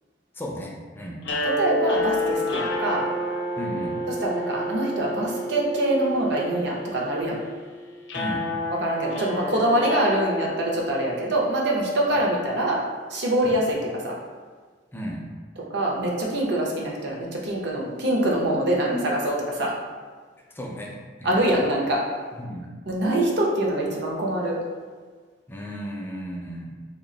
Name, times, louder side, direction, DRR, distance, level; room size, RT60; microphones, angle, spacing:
voice 1, 0.3-1.2 3.6-4.0 8.1-8.5 13.4-13.6 14.9-15.3 18.9-19.1 20.5-21.4 22.3-22.7 25.5-26.7, equal, 10° left, -1 dB, 0.4 m, -34 dB
sound 1, 1.2-11.4, equal, 70° left, 0.6 m, -29 dB
voice 2, 1.6-3.0 4.2-7.4 8.8-12.8 13.1-14.1 15.7-19.7 21.2-22.0 22.9-24.6, right 1 dB, 65° right, -2 dB, 0.7 m, -24 dB
2.9 x 2.4 x 3.9 m, 1.5 s
head